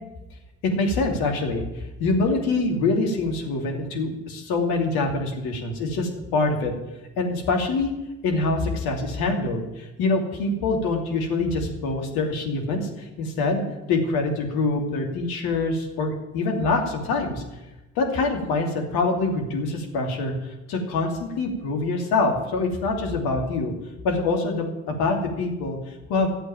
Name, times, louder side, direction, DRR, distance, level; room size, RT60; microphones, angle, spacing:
voice 1, 0.6-6.7 7.2-7.9 8.2-17.4 18.0-23.7 24.0-26.3, left 3 dB, 70° left, 3 dB, 2.8 m, -25 dB
12.0 x 8.2 x 9.0 m, 1.0 s
hypercardioid pair, 55°, 39 cm